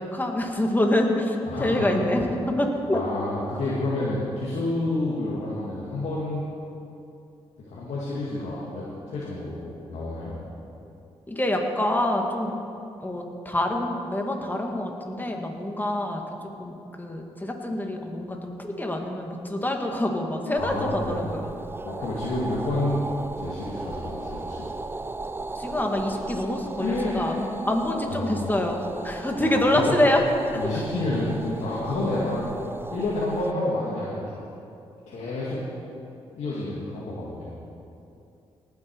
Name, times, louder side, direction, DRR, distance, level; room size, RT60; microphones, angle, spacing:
voice 1, 0.0-3.0 11.3-12.5 13.0-16.2 16.6-21.6 25.5-30.2, left 1 dB, 15° left, 2 dB, 2.0 m, -26 dB
voice 2, 1.5-1.9 2.9-6.5 7.7-10.4 20.6-21.3 21.9-23.0 23.4-24.7 26.8-27.3 28.0-28.5 29.4-30.0 30.5-32.5 32.9-34.2 35.1-35.6 36.4-37.5, left 2 dB, 75° left, -7 dB, 2.1 m, -29 dB
sound 1, 20.6-33.5, right 3 dB, 20° right, 0.4 m, -36 dB
18.5 x 8.2 x 4.7 m, 2.7 s
cardioid pair, 60°, 12 cm